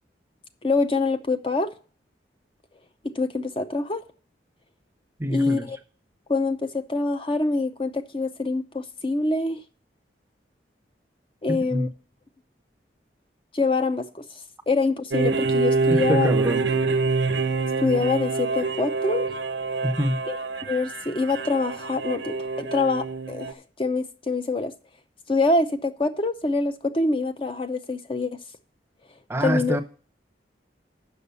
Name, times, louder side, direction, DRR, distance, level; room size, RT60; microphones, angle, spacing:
voice 1, 0.6-1.7 3.0-4.0 5.3-5.8 6.3-9.6 11.4-11.9 13.5-14.2 14.7-16.3 17.8-19.3 20.3-24.7 25.3-28.4 29.4-29.8, left 3 dB, 30° left, 0.5 m, -25 dB
voice 2, 5.2-5.7 11.5-11.9 15.9-16.6 19.8-20.2 29.3-29.8, right 1 dB, 15° right, 0.6 m, -25 dB
sound 1, 15.1-23.5, right 4 dB, 85° right, 0.9 m, -26 dB
8.2 x 6.1 x 6.8 m
head